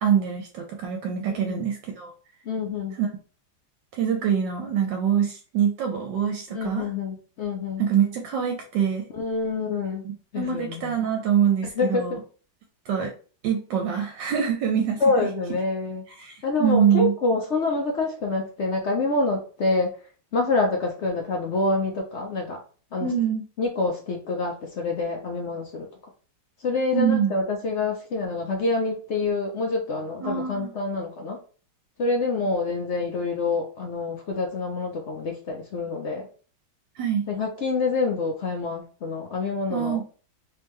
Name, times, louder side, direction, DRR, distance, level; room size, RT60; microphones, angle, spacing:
voice 1, 0.0-2.1 3.0-3.1 3.9-6.9 7.8-9.1 10.0-12.2 12.9-13.1 13.4-15.0 16.2-17.1 23.0-23.4 26.9-27.3 30.2-30.7 37.0-37.3 39.7-40.0, right 8 dB, 75° right, 3 dB, 1.3 m, -24 dB
voice 2, 1.3-1.6 2.5-3.0 6.5-7.8 9.1-10.0 10.3-11.0 11.6-12.2 15.0-16.1 16.4-20.0 20.3-22.6 22.9-23.1 23.6-25.9 26.6-31.4 32.0-36.3 37.3-40.0, left 3 dB, 75° left, 1 dB, 0.6 m, -26 dB
3.4 x 3.3 x 3.2 m, 0.38 s
omnidirectional pair, 2.0 m